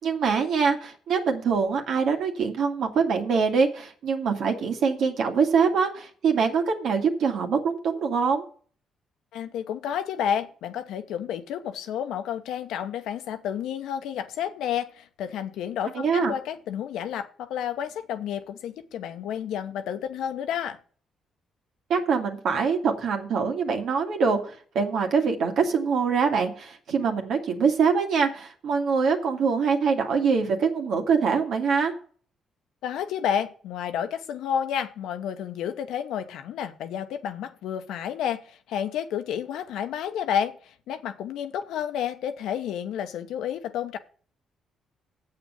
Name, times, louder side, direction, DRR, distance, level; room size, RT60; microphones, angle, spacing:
voice 1, 0.0-8.4 15.9-16.3 21.9-31.9, right 5 dB, 70° right, 2.2 m, -24 dB
voice 2, 9.3-20.8 32.8-44.0, left 9 dB, 80° left, 1.0 m, -30 dB
8.0 x 6.7 x 7.1 m
cardioid pair, 75°, 0 cm